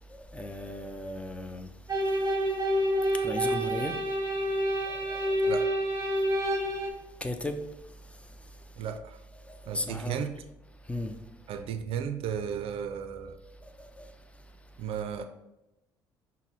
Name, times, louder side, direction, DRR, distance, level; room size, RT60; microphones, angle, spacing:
voice 1, 0.3-1.7 3.2-3.9 5.1-5.2 7.2-7.6 9.7-10.2 10.9-11.1 14.0-14.1, left 1 dB, 10° left, 0.5 m, -34 dB
sound 1, 1.9-6.9, equal, 30° right, 0.9 m, -28 dB
voice 2, 5.5-5.8 8.8-9.2 9.7-10.3 11.5-13.4 14.8-15.2, right 8 dB, 60° right, 0.4 m, -34 dB
6.0 x 2.1 x 4.1 m
hypercardioid pair, 55°, 11 cm